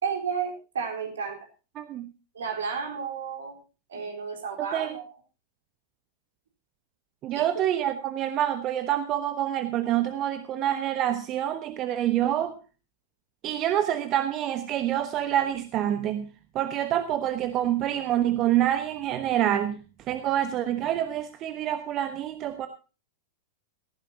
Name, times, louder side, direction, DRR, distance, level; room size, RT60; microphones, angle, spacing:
voice 1, 0.0-1.4 2.3-3.6 3.9-5.1 7.3-7.4, right 6 dB, 65° right, 3 dB, 4.2 m, -32 dB
voice 2, 1.8-2.1 4.6-5.0 7.2-12.5 13.4-16.3 16.5-19.7 20.1-22.7, right 11 dB, 30° right, 11 dB, 1.2 m, -27 dB
18.0 x 14.5 x 2.8 m, 0.33 s
figure-of-eight pair, 95°, 0 cm